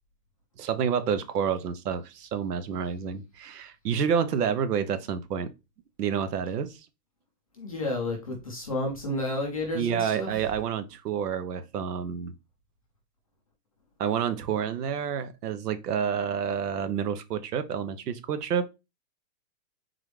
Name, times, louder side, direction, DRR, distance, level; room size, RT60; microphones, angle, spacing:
voice 1, 0.6-5.5 6.0-6.8 9.7-12.3 14.0-18.7, right 7 dB, 70° right, 0.9 m, -29 dB
voice 2, 7.6-10.3, left 1 dB, 25° left, 0.4 m, -31 dB
3.9 x 3.1 x 3.2 m
hypercardioid pair, 160°, 50 cm